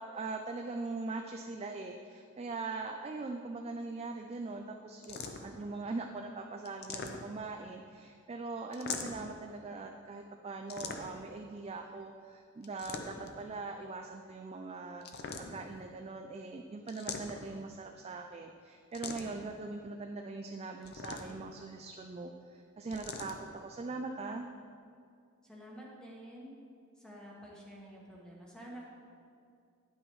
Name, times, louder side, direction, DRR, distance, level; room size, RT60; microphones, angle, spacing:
voice 1, 0.0-24.5, right 3 dB, 30° right, 3 dB, 0.4 m, -41 dB
sound 1, 5.0-5.6 6.7-7.5 8.7-9.4 10.7-11.3 12.6-13.4 15.0-15.8 16.9-17.6 18.9-19.5 20.8-21.5 22.9-23.4, left 4 dB, 50° left, 0.6 m, -42 dB
voice 2, 25.4-26.5 27.0-28.9, equal, 5° left, -4 dB, 1.4 m, -49 dB
9.9 x 8.7 x 3.1 m, 2.3 s
head